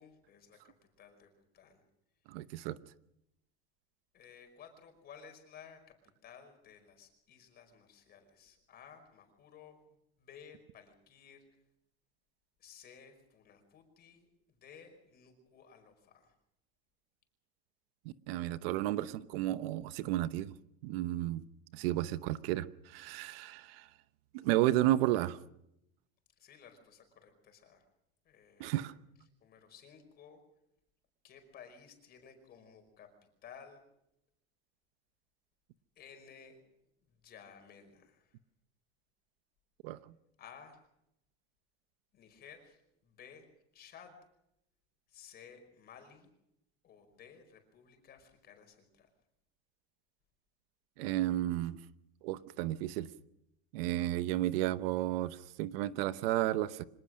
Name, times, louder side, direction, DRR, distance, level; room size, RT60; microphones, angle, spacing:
voice 1, 0.0-1.8 4.1-6.0 6.2-9.8 10.2-11.5 12.6-16.3 26.4-27.8 28.3-29.0 29.4-30.4 31.2-33.1 33.4-33.8 36.0-36.6 37.1-38.4 40.4-40.8 42.1-43.5 43.7-44.2 45.1-46.3 46.8-49.1, left 7 dB, 30° left, 7 dB, 5.2 m, -56 dB
voice 2, 2.3-2.8 18.0-20.5 20.8-21.4 21.7-23.9 24.3-25.4 28.6-28.9 39.8-40.0 51.0-51.8 52.2-53.1 53.7-56.8, right 15 dB, 70° right, 14 dB, 1.0 m, -32 dB
25.0 x 19.0 x 6.4 m, 0.80 s
cardioid pair, 160°, 30 cm